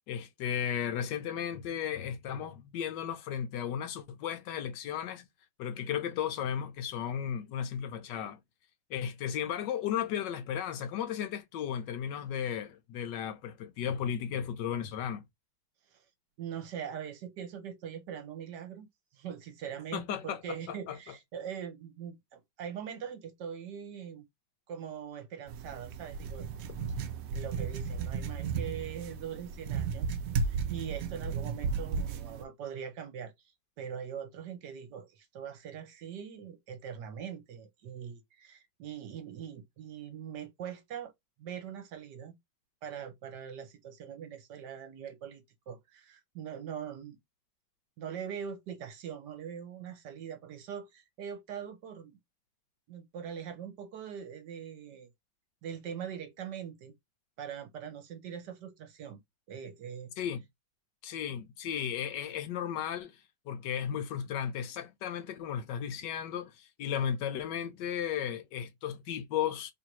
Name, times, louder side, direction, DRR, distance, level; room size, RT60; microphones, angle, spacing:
voice 1, 0.1-5.3 5.6-8.4 8.9-15.2 19.9-21.1 60.2-60.4 61.0-69.7, left 9 dB, 75° left, 1.2 m, -35 dB
voice 2, 16.4-18.9 19.1-24.2 24.7-26.5 27.0-30.1 30.4-33.3 33.8-41.1 41.4-42.3 42.8-47.2 48.0-52.2 52.9-55.1 55.6-56.9 57.4-59.2 59.5-60.1, right 8 dB, 70° right, 1.3 m, -42 dB
sound 1, 25.5-32.4, right 5 dB, 85° right, 0.7 m, -34 dB
3.2 x 2.6 x 4.4 m
omnidirectional pair, 2.1 m